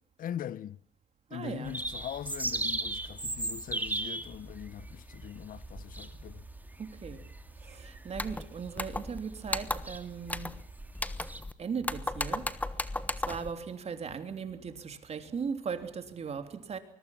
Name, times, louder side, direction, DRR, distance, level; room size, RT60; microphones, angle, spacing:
voice 1, 0.2-0.8 1.3-6.5, left 10 dB, 55° left, 0.9 m, -41 dB
voice 2, 1.3-1.7 6.8-7.3 7.6-10.6 11.6-16.8, right 6 dB, 40° right, 3.2 m, -38 dB
sound 1, 1.6-11.4, right 2 dB, 10° right, 2.5 m, -38 dB
sound 2, 8.1-8.4 8.8-9.2 9.5-10.0 10.3-10.6 10.9-11.5 11.8-13.5, left 2 dB, 10° left, 1.2 m, -35 dB
24.5 x 21.5 x 5.9 m
cardioid pair, 110°, 17 cm